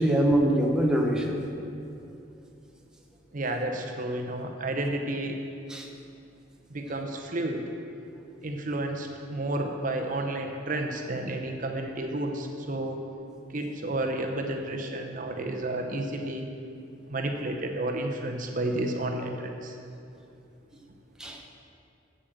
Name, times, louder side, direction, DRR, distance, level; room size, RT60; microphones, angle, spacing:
voice 1, 0.0-1.5 5.7-5.9 21.2-21.5, right 1 dB, 5° right, 0 dB, 0.9 m, -24 dB
voice 2, 3.3-5.4 6.7-7.7 8.4-13.0 13.5-16.4 17.1-19.7, right 1 dB, 40° right, 3 dB, 0.8 m, -31 dB
8.3 x 7.6 x 7.8 m, 2.6 s
head